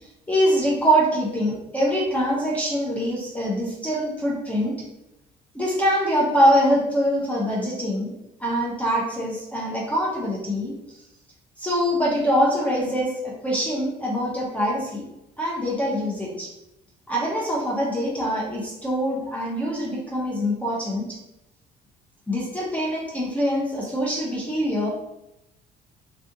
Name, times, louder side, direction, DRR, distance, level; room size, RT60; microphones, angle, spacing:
voice 1, 0.3-4.8 5.5-10.7 11.6-15.0 15.4-16.5 17.1-21.2 22.3-24.9, equal, 10° left, -4 dB, 0.6 m, -24 dB
2.4 x 2.4 x 2.7 m, 0.89 s
cardioid pair, 110°, 17 cm